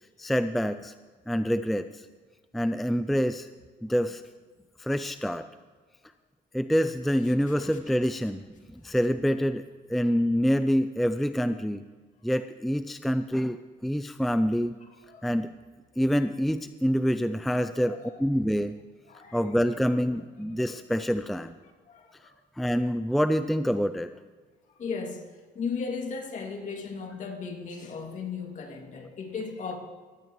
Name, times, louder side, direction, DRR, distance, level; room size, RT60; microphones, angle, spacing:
voice 1, 0.2-0.9 1.3-2.0 2.5-3.5 3.8-4.2 4.8-5.5 6.5-8.4 8.7-9.6 9.9-11.8 12.2-14.7 15.2-15.5 16.0-18.8 19.3-21.5 22.6-24.1, equal, ahead, 10 dB, 0.4 m, -26 dB
voice 2, 17.6-18.0 19.1-19.5 21.9-22.3 24.8-25.3 25.5-29.8, left 5 dB, 50° left, 2 dB, 2.5 m, -36 dB
20.5 x 14.5 x 3.2 m, 1.4 s
cardioid pair, 110°, 17 cm